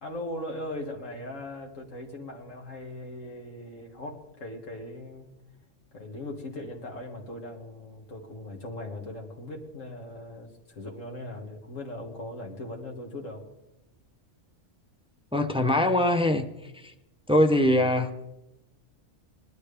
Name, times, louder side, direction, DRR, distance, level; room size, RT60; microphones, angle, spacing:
voice 1, 0.0-5.3 5.9-13.4, left 1 dB, 85° left, 1 dB, 2.3 m, -39 dB
voice 2, 15.3-16.5 16.7-16.9 17.3-18.3, left 1 dB, 5° right, 7 dB, 0.4 m, -23 dB
20.0 x 12.0 x 3.4 m, 0.95 s
omnidirectional pair, 1.3 m